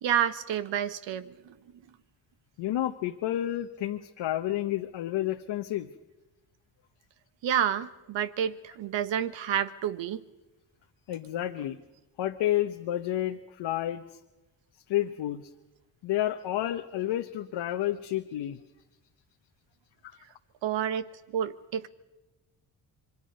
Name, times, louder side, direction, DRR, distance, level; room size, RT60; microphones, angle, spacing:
voice 1, 0.0-1.6 7.4-10.2 20.6-21.9, right 9 dB, 75° right, 13 dB, 1.3 m, -29 dB
voice 2, 2.6-5.9 11.1-11.8 12.2-14.2 14.9-15.5 16.0-18.6, left 13 dB, 80° left, 5 dB, 1.1 m, -30 dB
26.5 x 23.0 x 5.4 m, 1.1 s
supercardioid pair, 60°, 44 cm